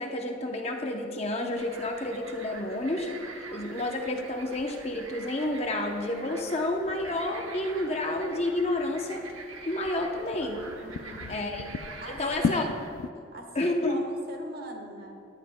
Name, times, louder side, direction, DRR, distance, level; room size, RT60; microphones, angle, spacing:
voice 1, 0.0-3.1 3.5-9.2 9.7-10.6 11.3-11.7 12.1-12.6 13.5-14.0, left 1 dB, 30° left, 2 dB, 0.7 m, -30 dB
sound 1, 1.6-13.1, left 5 dB, 85° left, 0.4 m, -40 dB
sound 2, 1.6-12.9, right 4 dB, 75° right, 1.0 m, -45 dB
voice 2, 10.8-11.5 12.0-12.8 13.3-15.2, right 2 dB, 45° right, 3 dB, 1.2 m, -42 dB
18.0 x 10.5 x 2.2 m, 2.4 s
head